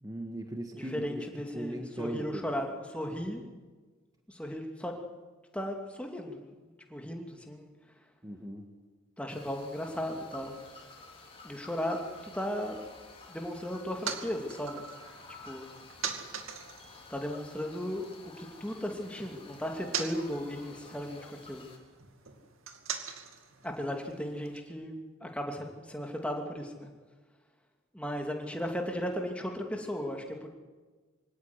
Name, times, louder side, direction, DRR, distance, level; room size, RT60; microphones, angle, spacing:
voice 1, 0.0-1.2 1.5-2.4 8.2-8.6, right 1 dB, 15° right, 4 dB, 1.6 m, -38 dB
voice 2, 0.7-3.4 4.3-4.9 5.5-7.7 9.2-10.5 11.4-12.0 12.2-12.8 13.3-14.8 15.4-15.7 17.1-18.1 18.4-21.7 23.6-26.9 27.9-30.5, equal, 5° left, 2 dB, 2.6 m, -36 dB
sound 1, 9.3-21.8, left 3 dB, 25° left, 4.1 m, -51 dB
sound 2, 13.6-18.2 18.4-24.6, right 7 dB, 90° right, 2.5 m, -43 dB
24.0 x 17.5 x 9.8 m, 1.4 s
head